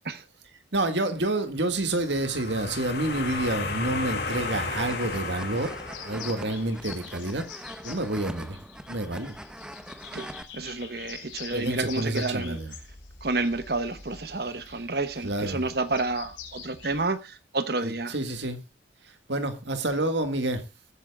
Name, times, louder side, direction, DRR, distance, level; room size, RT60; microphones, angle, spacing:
voice 1, 0.7-5.7 6.0-8.6 8.9-9.3 11.5-12.7 14.7-14.8 15.2-15.7 17.8-18.6 19.3-20.6, right 2 dB, 75° right, 1.9 m, -29 dB
sound 1, 1.9-6.7, left 3 dB, 60° left, 2.3 m, -33 dB
sound 2, 4.4-10.4, equal, 5° right, 0.8 m, -42 dB
sound 3, 5.5-17.1, left 6 dB, 80° left, 3.7 m, -46 dB
voice 2, 10.5-12.6 13.2-18.1, right 3 dB, 55° right, 1.0 m, -30 dB
20.0 x 8.8 x 2.3 m
head